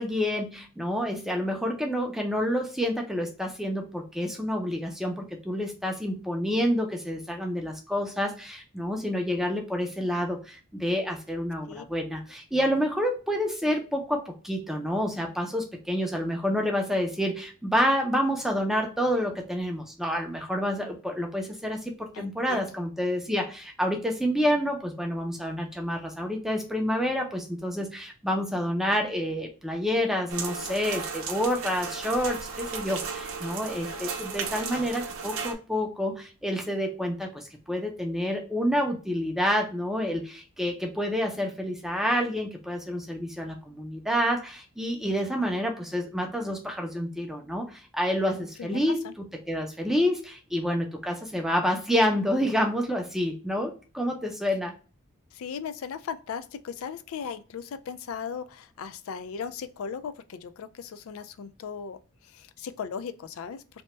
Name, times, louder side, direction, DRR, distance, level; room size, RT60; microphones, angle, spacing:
voice 1, 0.0-54.7, equal, ahead, 0.4 m, -28 dB
voice 2, 22.1-22.7 48.6-48.8 49.0-49.1 55.3-62.0 62.3-63.6, left 6 dB, 75° left, 0.3 m, -37 dB
sound 1, 30.3-35.5, right 5 dB, 75° right, 0.6 m, -35 dB
2.8 x 2.1 x 3.1 m
head